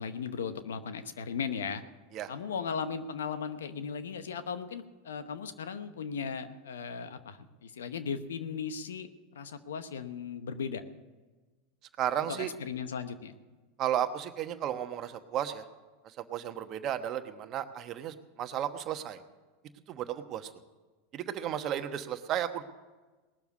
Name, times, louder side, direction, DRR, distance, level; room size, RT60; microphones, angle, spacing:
voice 1, 0.0-1.8 2.3-10.8 12.2-13.3, left 6 dB, 85° left, 11 dB, 0.9 m, -37 dB
voice 2, 12.0-12.5 13.8-15.6 16.3-19.2 19.9-20.5 21.1-22.6, right 10 dB, 45° right, 9 dB, 1.1 m, -33 dB
19.0 x 7.1 x 8.2 m, 1.3 s
hypercardioid pair, 105°, 0 cm